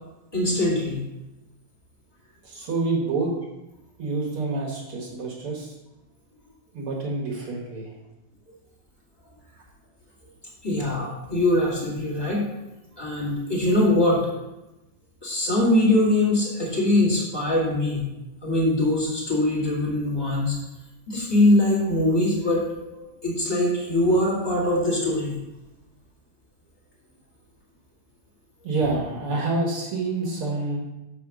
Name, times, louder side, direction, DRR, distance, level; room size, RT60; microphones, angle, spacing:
voice 1, 0.3-1.0 10.6-12.4 13.0-14.3 15.2-18.0 18.4-20.6 21.1-22.6 22.9-25.3, left 1 dB, 10° left, -6 dB, 1.3 m, -22 dB
voice 2, 2.4-3.3 4.0-5.7 6.7-7.9 28.6-30.8, right 3 dB, 55° right, -2 dB, 1.7 m, -27 dB
6.2 x 5.1 x 6.0 m, 0.98 s
omnidirectional pair, 3.6 m